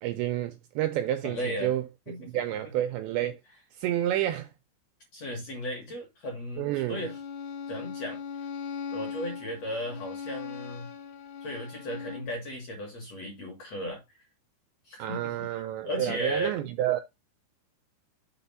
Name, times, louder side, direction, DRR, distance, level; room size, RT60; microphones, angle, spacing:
voice 1, 0.0-3.4 3.8-4.5 6.6-7.0 15.0-17.0, right 12 dB, 85° right, 2.5 m, -30 dB
voice 2, 1.2-1.7 2.1-2.3 5.1-7.2 7.7-8.2 8.9-10.9 11.4-14.0 14.8-15.5 15.8-16.6, equal, 60° left, 1.7 m, -35 dB
Bowed string instrument, 6.9-12.4, left 6 dB, 80° left, 2.4 m, -39 dB
7.0 x 4.3 x 5.5 m
omnidirectional pair, 5.6 m